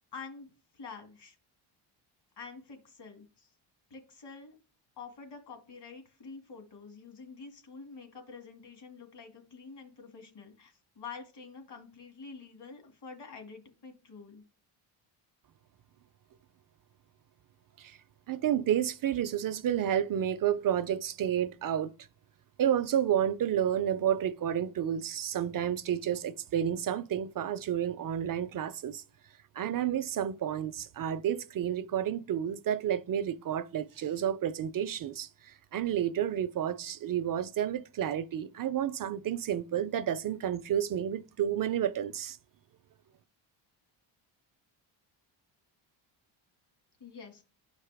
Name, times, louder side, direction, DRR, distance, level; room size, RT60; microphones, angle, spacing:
voice 1, 0.1-0.5 0.7-1.4 2.4-3.5 3.9-4.5 5.0-14.4 47.0-47.4, left 5 dB, 55° left, 2.2 m, -47 dB
voice 2, 18.3-21.9 22.6-29.0 29.6-35.3 35.7-42.4, right 10 dB, 45° right, 0.5 m, -30 dB
11.5 x 4.8 x 3.4 m
cardioid pair, 95°, 50 cm